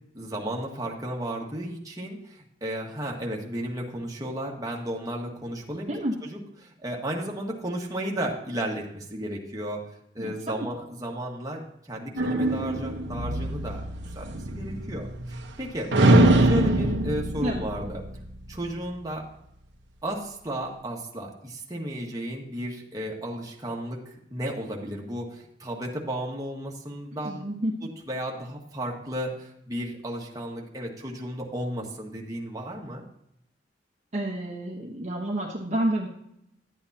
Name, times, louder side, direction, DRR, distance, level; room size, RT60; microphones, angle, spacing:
voice 1, 0.1-5.9 6.2-9.8 10.1-11.6 11.9-13.8 14.1-15.9 16.4-18.0 18.5-19.3 20.0-27.5 27.8-33.0, right 1 dB, 20° right, -2 dB, 1.6 m, -34 dB
sound 1, 12.2-15.6 15.9-18.6, right 1 dB, 80° right, 1.1 m, -23 dB
voice 2, 27.2-27.7 34.1-36.1, right 1 dB, 40° right, -2 dB, 1.2 m, -29 dB
11.5 x 8.8 x 2.8 m, 0.77 s
head